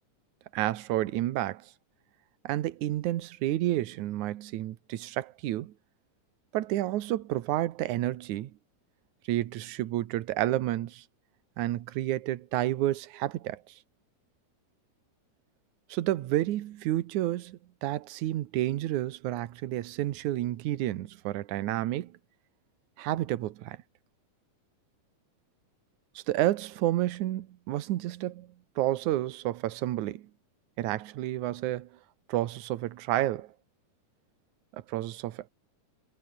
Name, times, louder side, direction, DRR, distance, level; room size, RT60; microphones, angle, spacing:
voice 1, 0.5-1.7 2.4-5.7 6.5-8.5 9.3-11.0 11.6-13.7 15.9-22.2 23.0-23.8 26.2-28.5 28.8-30.3 30.8-31.9 32.3-33.5 34.7-35.5, right 14 dB, 70° right, 2.4 m, -30 dB
omnidirectional pair, 3.7 m